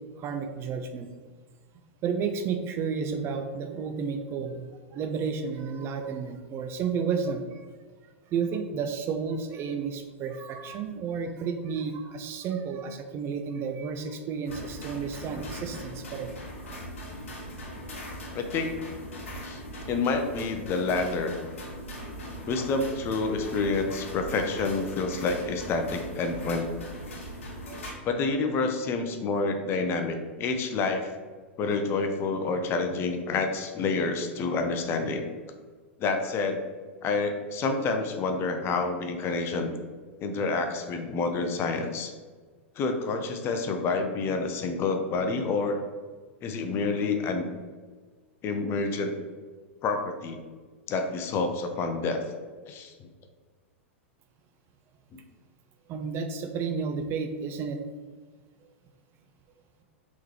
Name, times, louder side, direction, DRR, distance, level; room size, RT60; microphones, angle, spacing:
voice 1, 0.2-1.1 2.0-7.7 8.3-16.3 55.9-57.8 58.6-58.7, right 6 dB, 35° right, 6 dB, 0.4 m, -32 dB
sound 1, 14.5-27.9, equal, 80° left, 1.1 m, -40 dB
voice 2, 18.3-18.7 19.4-19.6 19.9-21.4 22.5-26.7 28.0-31.1 31.6-35.3 36.0-36.6 37.0-39.7 40.2-42.1 42.8-45.8 46.4-47.5 48.4-49.1 49.8-50.4 50.9-52.2 52.7-53.1 55.1-55.2, left 3 dB, 35° left, 6 dB, 0.5 m, -28 dB
3.6 x 3.1 x 3.2 m, 1.5 s
hypercardioid pair, 105°, 7 cm